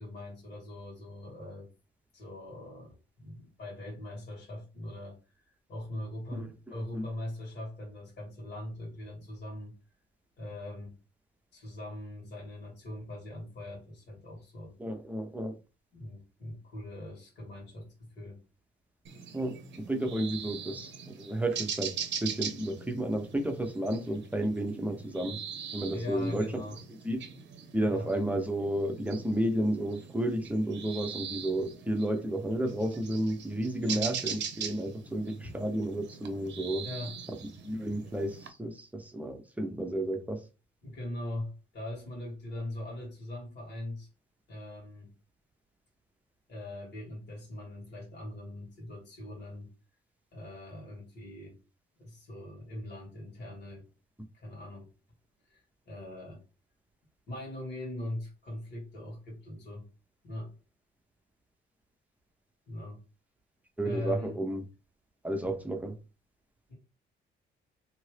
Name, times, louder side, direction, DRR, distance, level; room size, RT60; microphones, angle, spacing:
voice 1, 0.0-1.7 2.1-5.2 5.7-9.8 10.4-10.9 11.5-14.7 15.9-18.4 25.9-26.8 27.9-28.1 33.8-34.1 35.4-35.6 36.8-37.2 40.8-44.1 44.5-45.1 46.5-49.7 50.3-51.6 52.0-53.9 54.3-54.9 55.5-56.4 57.3-59.9 60.2-60.6 62.7-63.0 63.8-64.4 65.4-65.5 66.7-66.8, left 1 dB, 60° left, 1.8 m, -41 dB
voice 2, 14.8-15.6 19.3-21.9 22.2-25.4 25.7-26.5 27.0-27.3 27.7-36.9 37.6-40.4 63.8-64.6 65.2-65.9, right 1 dB, 5° right, 0.7 m, -32 dB
sound 1, 19.0-38.5, right 7 dB, 65° right, 0.7 m, -42 dB
2.9 x 2.6 x 3.3 m
cardioid pair, 90°, 20 cm